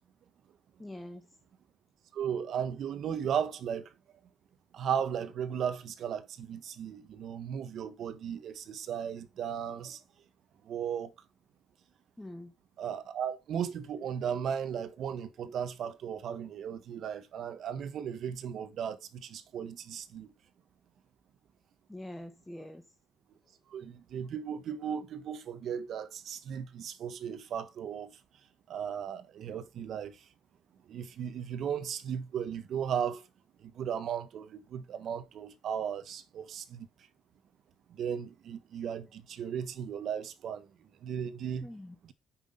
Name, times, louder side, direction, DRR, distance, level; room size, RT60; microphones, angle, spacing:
voice 1, 0.8-1.2 12.2-12.5 21.9-22.8 41.6-41.9, left 1 dB, 10° left, 1.3 m, -44 dB
voice 2, 2.1-3.9 4.7-10.0 10.6-11.1 12.8-20.3 23.7-28.2 28.7-30.3 30.9-33.2 33.6-36.9 37.9-41.7 42.0-42.1, right 8 dB, 65° right, 1.3 m, -36 dB
8.1 x 6.1 x 5.0 m
cardioid pair, 110°, 0 cm